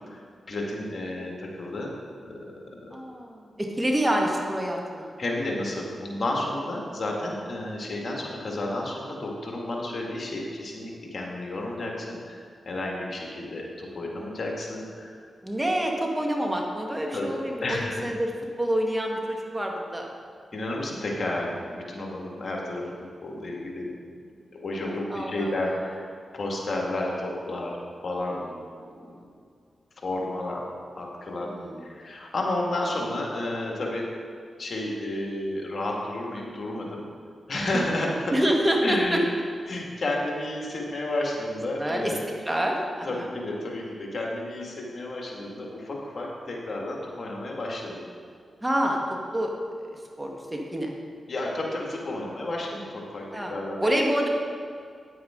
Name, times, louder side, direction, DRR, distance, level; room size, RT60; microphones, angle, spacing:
voice 1, 0.5-1.9 2.2-2.4 5.2-15.2 17.1-18.0 20.5-22.9 23.2-23.9 24.5-26.1 26.3-27.7 28.0-28.4 29.0-29.1 30.0-30.7 31.0-31.5 31.8-34.0 34.6-37.1 37.5-38.1 38.8-39.2 39.7-42.2 43.0-48.0 51.3-53.8, left 1 dB, 55° left, -1 dB, 1.9 m, -31 dB
voice 2, 2.9-5.1 15.4-18.3 18.6-20.1 24.9-25.9 28.3-28.5 28.8-29.3 31.4-31.9 37.7-38.0 38.3-39.2 41.8-43.3 48.6-49.0 49.3-49.5 49.8-50.9 53.3-54.3, equal, 20° right, 1 dB, 1.5 m, -27 dB
9.3 x 9.1 x 3.7 m, 2.2 s
cardioid pair, 50°, 0 cm